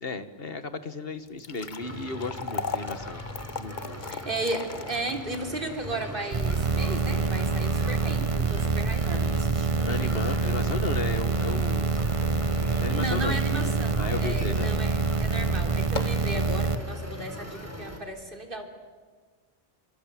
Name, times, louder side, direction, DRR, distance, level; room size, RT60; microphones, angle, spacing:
voice 1, 0.0-3.2 3.6-4.0 9.8-11.9 12.8-13.4 14.0-14.7, left 3 dB, 65° left, 11 dB, 1.9 m, -34 dB
sound 1, 1.2-13.5 13.9-14.0 14.7-14.9 15.2-15.3 15.7-16.3, left 5 dB, 50° left, 1.3 m, -40 dB
sound 2, 1.8-18.0, equal, 15° right, 3.9 m, -40 dB
voice 2, 4.1-10.2 12.9-18.7, right 1 dB, 55° right, 4 dB, 3.8 m, -35 dB
sound 3, 6.3-16.8, right 4 dB, 35° right, 0.9 m, -26 dB
25.5 x 25.5 x 8.7 m, 1.5 s
omnidirectional pair, 1.0 m